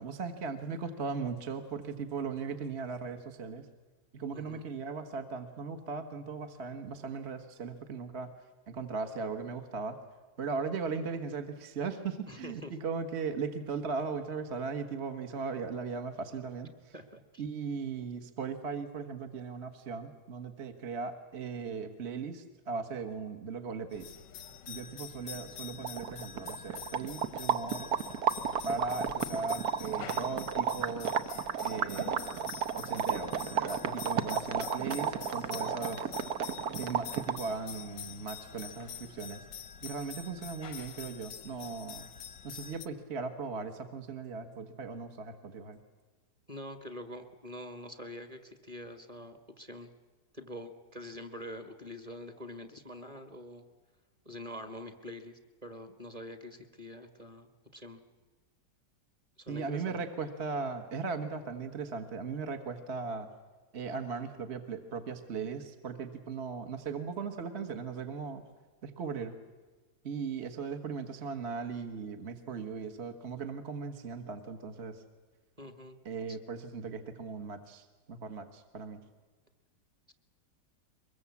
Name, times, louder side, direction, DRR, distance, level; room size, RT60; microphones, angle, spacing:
voice 1, 0.0-3.6 4.1-8.3 8.7-10.0 10.4-16.9 17.4-24.1 24.7-27.9 28.6-31.1 31.6-32.4 32.7-36.1 36.8-39.4 39.8-42.1 42.4-45.8 59.5-63.3 63.7-68.4 68.8-69.3 70.0-75.0 76.0-79.0, right 5 dB, 40° right, 7 dB, 1.6 m, -38 dB
voice 2, 4.3-4.6 12.3-12.7 16.9-17.4 46.5-49.9 50.3-53.6 54.2-58.0 59.4-60.0 75.6-76.0 76.3-76.4, left 1 dB, 20° right, 8 dB, 1.7 m, -45 dB
sound 1, 23.9-42.9, left 8 dB, 85° left, 1.6 m, -46 dB
sound 2, 25.5-25.6 25.8-37.5, right 7 dB, 65° right, 1.4 m, -33 dB
23.5 x 21.5 x 8.4 m, 1.3 s
omnidirectional pair, 1.9 m